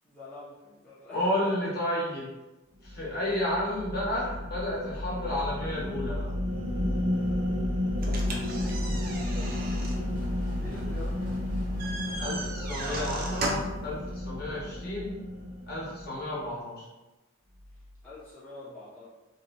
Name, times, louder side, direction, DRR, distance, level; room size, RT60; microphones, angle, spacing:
voice 1, 0.0-1.5 3.3-3.4 8.0-8.5 10.5-11.4 18.0-19.1, left 2 dB, 5° left, -10 dB, 0.5 m, -46 dB
voice 2, 1.1-2.3 2.8-6.3 12.2-15.1 15.7-16.8, left 1 dB, 50° left, -6 dB, 0.8 m, -31 dB
sound 1, 2.8-16.4, left 1 dB, 80° right, 0.7 m, -32 dB
sound 2, 8.0-13.8, right 2 dB, 45° right, 0.4 m, -37 dB
sound 3, 8.1-12.5, equal, 25° left, 1.0 m, -46 dB
2.7 x 2.1 x 2.7 m, 1.1 s
head